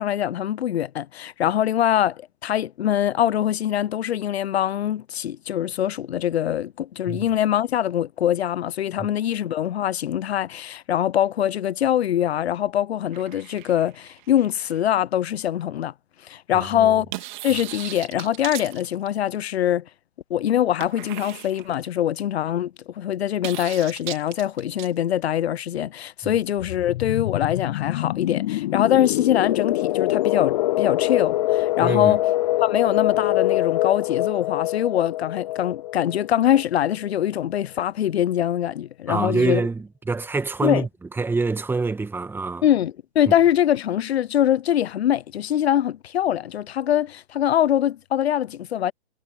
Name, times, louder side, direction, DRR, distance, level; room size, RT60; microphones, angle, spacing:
voice 1, 0.0-15.9 16.3-17.1 17.4-19.8 20.3-32.2 32.6-39.6 40.6-40.9 42.6-48.9, left 11 dB, 65° left, 0.8 m, -23 dB
sound 1, 13.1-14.8 17.1-19.4 20.8-21.9 23.4-24.9, right 18 dB, 45° right, 3.6 m, -37 dB
voice 2, 16.5-16.9 26.2-26.4 31.8-32.2 39.1-40.9 41.2-42.6, right 3 dB, 5° right, 1.9 m, -26 dB
sound 2, 26.6-37.1, left 15 dB, 35° left, 0.5 m, -24 dB
hypercardioid pair, 125°, 34 cm